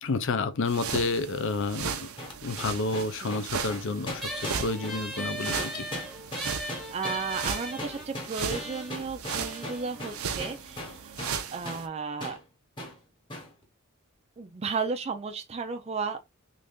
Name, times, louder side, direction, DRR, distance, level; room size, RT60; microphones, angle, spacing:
voice 1, 0.0-2.1 2.4-5.9, left 3 dB, 60° left, 0.5 m, -30 dB
sound 1, 0.7-11.9, right 6 dB, 85° right, 0.6 m, -37 dB
sound 2, 2.2-11.4 11.7-11.9 12.2-12.4 12.8-13.0 13.3-13.5, left 1 dB, 25° left, 1.1 m, -39 dB
sound 3, 4.2-11.0, equal, ahead, 0.9 m, -39 dB
voice 2, 6.9-11.1 11.5-12.4 14.4-16.2, right 4 dB, 30° right, 0.4 m, -34 dB
3.2 x 2.6 x 3.5 m
head